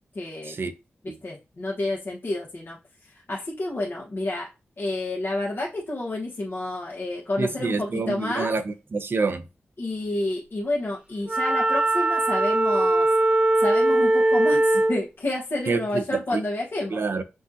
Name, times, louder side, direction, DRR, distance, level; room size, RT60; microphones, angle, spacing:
voice 1, 0.1-0.6 1.2-2.8 3.1-4.5 4.8-8.5 9.8-13.1 13.6-17.0, left 2 dB, 55° left, 1.3 m, -29 dB
voice 2, 7.4-9.4 15.7-16.4 16.9-17.2, right 4 dB, 60° right, 0.6 m, -27 dB
Wind instrument woodwind instrument, 11.3-15.0, right 1 dB, 25° right, 1.1 m, -20 dB
6.1 x 2.4 x 2.8 m
cardioid pair, 50°, 4 cm